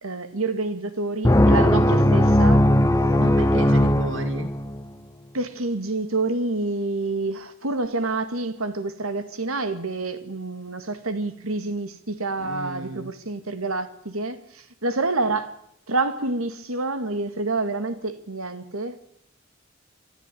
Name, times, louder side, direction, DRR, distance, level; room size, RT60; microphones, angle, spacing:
voice 1, 0.0-2.7 5.3-15.5 15.9-19.1, right 3 dB, 85° right, 2.1 m, -28 dB
sound 1, 1.2-4.8, left 1 dB, 15° left, 0.8 m, -18 dB
voice 2, 3.2-4.5 12.4-13.1, right 2 dB, 60° right, 1.8 m, -33 dB
25.0 x 13.5 x 9.3 m
head